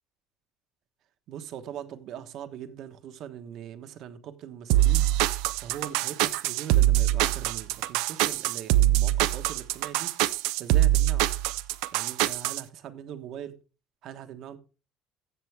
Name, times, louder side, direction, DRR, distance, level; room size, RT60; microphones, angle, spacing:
voice 1, 1.3-5.1 5.6-10.1 10.6-11.2 11.9-13.5 14.0-14.6, right 9 dB, 50° right, 8 dB, 1.2 m, -41 dB
sound 1, 4.7-12.6, right 15 dB, 85° right, 0.6 m, -23 dB
15.0 x 7.1 x 3.4 m, 0.33 s
cardioid pair, 170°, 0 cm